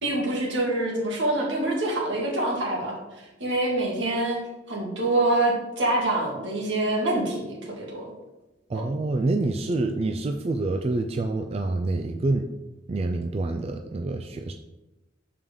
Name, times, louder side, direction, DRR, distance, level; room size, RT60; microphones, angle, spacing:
voice 1, 0.0-2.9 3.4-4.4 4.7-8.1 8.7-8.8, right 2 dB, 80° right, -2 dB, 2.0 m, -25 dB
voice 2, 8.7-12.5 12.9-14.5, right 2 dB, 35° right, 5 dB, 0.3 m, -27 dB
6.9 x 4.7 x 3.7 m, 1.0 s
head